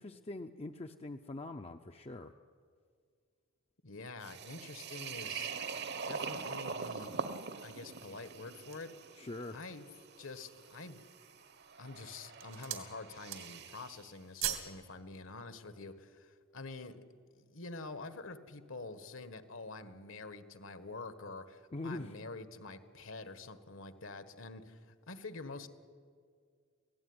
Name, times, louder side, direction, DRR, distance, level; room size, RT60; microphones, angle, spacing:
voice 1, 0.0-2.3 9.2-9.6 21.7-22.2, left 2 dB, 30° left, 6 dB, 0.6 m, -43 dB
voice 2, 3.8-5.5 6.0-7.1 7.6-8.9 9.5-9.9 10.2-11.0 11.8-17.0 17.3-25.7, left 3 dB, 70° left, 11 dB, 1.5 m, -47 dB
sound 1, 4.2-14.0, right 5 dB, 50° right, 1.1 m, -44 dB
sound 2, 8.2-9.0 9.6-9.7 10.2-10.7 11.4-11.8 12.1-12.9 13.2-13.7 14.0-14.8 15.1-15.2, right 11 dB, 80° right, 2.4 m, -40 dB
25.5 x 17.0 x 9.7 m, 2.1 s
head